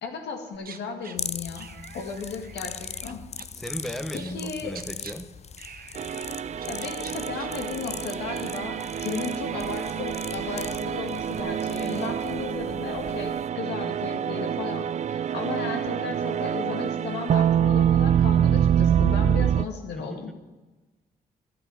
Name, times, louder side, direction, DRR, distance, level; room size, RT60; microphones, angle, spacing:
voice 1, 0.0-1.7 1.9-3.2 4.1-4.8 6.7-20.3, left 5 dB, 80° left, 3 dB, 2.1 m, -35 dB
sound 1, 0.5-1.2 1.6-5.1 5.6-6.3 6.6-11.4, right 7 dB, 60° right, 1.0 m, -47 dB
sound 2, 1.2-13.5, left 6 dB, 40° left, 0.5 m, -40 dB
voice 2, 3.6-5.3 19.9-20.3, left 1 dB, ahead, 8 dB, 1.2 m, -36 dB
sound 3, 6.0-19.7, right 9 dB, 45° right, 0.4 m, -26 dB
12.0 x 7.6 x 9.9 m, 1.2 s
supercardioid pair, 60°, 17 cm